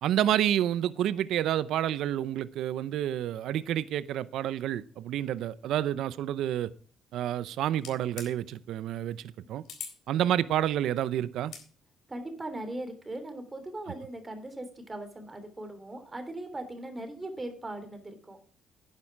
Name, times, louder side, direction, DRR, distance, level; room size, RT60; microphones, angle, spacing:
voice 1, 0.0-6.7 7.1-9.6 10.1-11.5, right 11 dB, 80° right, 0.6 m, -29 dB
sound 1, 7.8-8.3 9.7-10.0 11.4-11.7, left 7 dB, 75° left, 3.9 m, -41 dB
voice 2, 12.1-18.4, right 1 dB, 20° right, 3.2 m, -39 dB
11.5 x 9.7 x 4.6 m
cardioid pair, 90°, 0 cm